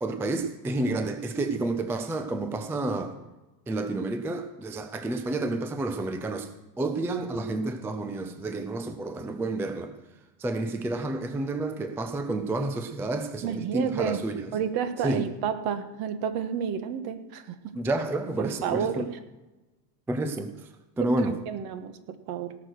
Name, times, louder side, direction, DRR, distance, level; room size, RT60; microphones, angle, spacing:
voice 1, 0.0-3.2 3.7-6.5 6.8-9.9 10.4-14.5 15.0-15.3 17.7-19.1 20.1-20.7 21.0-21.3, right 2 dB, 5° right, 8 dB, 0.4 m, -30 dB
voice 2, 13.4-14.2 14.5-17.5 18.4-19.1 21.0-22.6, right 8 dB, 50° right, 10 dB, 1.5 m, -30 dB
18.0 x 6.5 x 6.3 m, 1.1 s
supercardioid pair, 135°, 49 cm